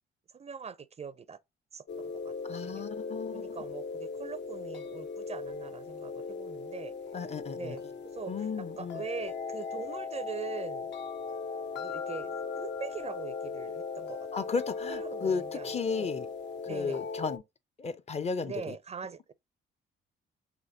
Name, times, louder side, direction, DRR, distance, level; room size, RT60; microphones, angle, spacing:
voice 1, 0.3-1.4 1.7-2.3 2.6-2.8 3.3-6.9 7.5-7.8 8.1-10.9 11.7-14.5 14.9-16.1 16.6-17.0 18.4-19.3, right 6 dB, 35° right, 0.4 m, -42 dB
sound 1, 1.9-17.4, left 5 dB, 65° left, 0.7 m, -38 dB
voice 2, 2.5-3.6 7.1-7.8 8.3-9.0 14.3-16.3 16.6-17.4 17.8-18.8, left 5 dB, 35° left, 0.5 m, -34 dB
6.0 x 3.0 x 2.7 m
cardioid pair, 90°, 20 cm